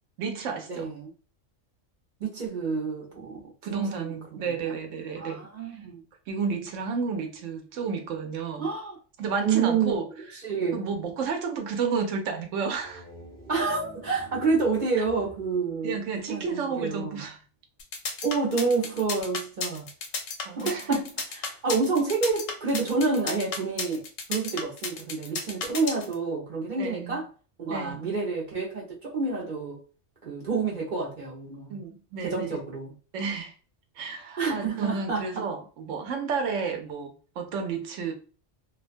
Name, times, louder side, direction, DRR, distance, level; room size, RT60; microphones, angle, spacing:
voice 1, 0.2-0.9 3.3-5.4 6.3-8.7 9.2-10.1 10.7-13.0 15.8-17.4 20.5-21.1 26.8-27.2 27.7-28.1 31.7-32.6 33.1-33.5 34.0-38.1, right 5 dB, 75° right, 1.0 m, -31 dB
voice 2, 0.7-1.1 2.2-4.7 5.2-6.0 8.6-9.0 9.4-10.0 10.4-10.8 13.5-16.0 16.3-17.2 18.2-19.9 20.6-21.0 21.4-24.0 24.3-27.3 27.6-29.8 30.2-31.8 32.2-32.9 34.4-35.3, right 4 dB, 45° right, 0.7 m, -28 dB
sound 1, 12.5-16.6, right 1 dB, 10° right, 0.5 m, -49 dB
sound 2, 17.8-26.1, left 4 dB, 90° left, 1.0 m, -33 dB
2.4 x 2.2 x 2.5 m
omnidirectional pair, 1.3 m